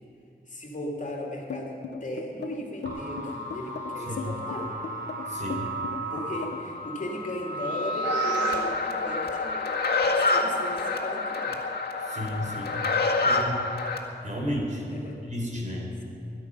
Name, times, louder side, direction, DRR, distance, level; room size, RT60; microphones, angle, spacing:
voice 1, 0.5-4.7 6.1-9.8 10.0-11.5 14.9-15.2 15.9-16.0, left 1 dB, 45° left, -1 dB, 2.8 m, -37 dB
sound 1, 1.5-6.8, left 5 dB, 85° left, 0.9 m, -37 dB
sound 2, 2.9-8.6, right 3 dB, 75° right, 3.3 m, -33 dB
voice 2, 5.3-5.7 12.1-12.8 13.2-13.6 14.2-14.8 15.2-15.9, equal, 45° right, -1 dB, 4.2 m, -32 dB
sound 3, 8.0-14.0, left 3 dB, 60° left, 1.9 m, -27 dB
21.0 x 12.0 x 5.5 m, 2.5 s
wide cardioid pair, 95°, 18 cm